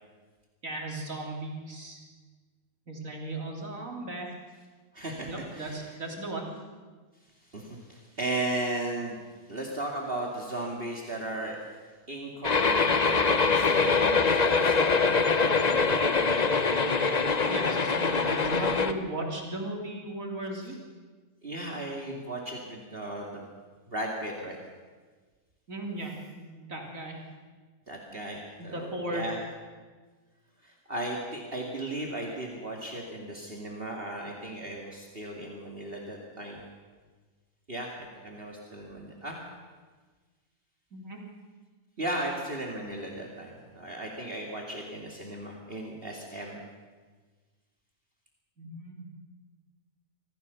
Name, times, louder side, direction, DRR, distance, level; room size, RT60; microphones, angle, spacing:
voice 1, 0.6-2.0 2.9-4.3 5.3-6.5 17.5-20.8 25.7-27.2 28.6-29.3 40.9-41.2 48.6-49.0, right 1 dB, 60° right, 0 dB, 3.7 m, -36 dB
voice 2, 4.9-5.9 7.5-11.6 12.1-16.5 21.4-23.5 23.9-24.6 27.9-29.4 30.6-36.6 37.7-39.4 42.0-46.6, right 1 dB, 40° right, -1 dB, 2.6 m, -36 dB
sound 1, 12.4-18.9, left 4 dB, 35° left, 0.9 m, -24 dB
25.5 x 15.5 x 7.0 m, 1.4 s
omnidirectional pair, 1.6 m